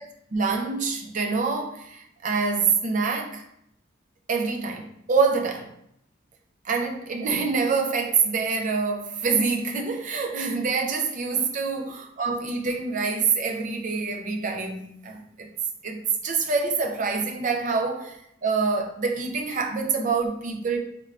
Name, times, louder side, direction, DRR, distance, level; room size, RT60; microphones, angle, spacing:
voice 1, 0.0-3.4 4.3-5.7 6.6-15.5 15.8-20.8, right 4 dB, 40° right, 0.5 m, -26 dB
3.6 x 3.3 x 2.3 m
head